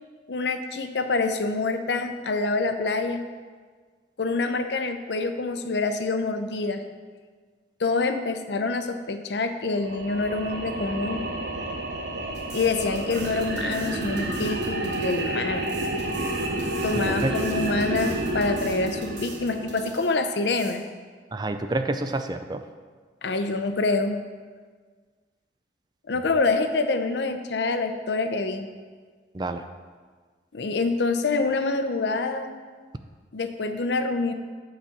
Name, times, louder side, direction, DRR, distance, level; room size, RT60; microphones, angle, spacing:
voice 1, 0.3-3.2 4.2-6.8 7.8-11.3 12.5-15.7 16.8-20.8 23.2-24.2 26.1-28.7 30.5-32.5 33.3-34.3, left 3 dB, 75° left, 8 dB, 0.6 m, -26 dB
sound 1, 9.8-20.1, right 1 dB, 65° right, 0.9 m, -30 dB
sound 2, 12.3-20.7, right 3 dB, 80° right, 2.4 m, -45 dB
voice 2, 16.9-17.4 21.3-22.6 29.3-29.6, right 2 dB, 25° right, 8 dB, 0.4 m, -28 dB
8.8 x 4.1 x 7.1 m, 1.5 s
head